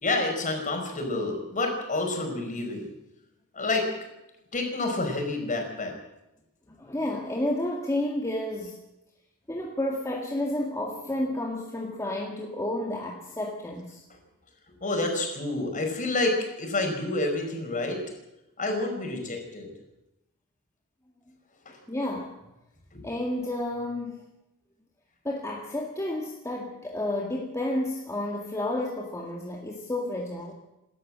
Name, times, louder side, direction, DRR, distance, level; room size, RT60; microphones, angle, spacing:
voice 1, 0.0-2.9 3.5-4.0 4.5-5.9 14.8-18.0 18.6-19.7 21.7-21.8 22.9-23.1, left 2 dB, 35° left, 3 dB, 5.5 m, -28 dB
voice 2, 6.7-8.8 9.5-14.0 21.9-22.3 23.0-24.2 25.2-30.5, left 1 dB, 15° left, -1 dB, 2.1 m, -31 dB
28.5 x 13.0 x 7.7 m, 0.92 s
head